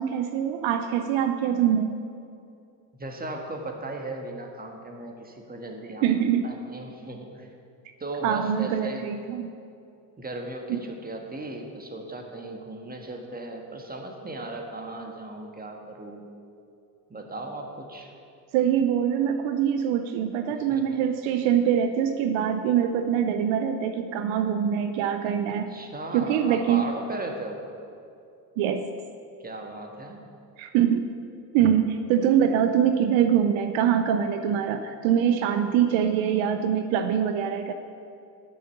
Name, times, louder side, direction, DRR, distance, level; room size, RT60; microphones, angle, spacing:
voice 1, 0.0-2.0 6.0-6.5 8.2-9.5 10.7-10.8 18.5-25.8 26.1-26.8 28.6-28.8 30.6-31.1 31.5-37.7, right 9 dB, 70° right, 8 dB, 0.7 m, -24 dB
voice 2, 3.0-6.1 6.4-7.5 8.0-9.1 10.2-16.2 17.1-18.1 20.7-20.8 25.7-27.6 29.4-30.3, right 2 dB, 20° right, 2 dB, 1.7 m, -37 dB
9.4 x 6.4 x 6.9 m, 2.5 s
hypercardioid pair, 65°, 49 cm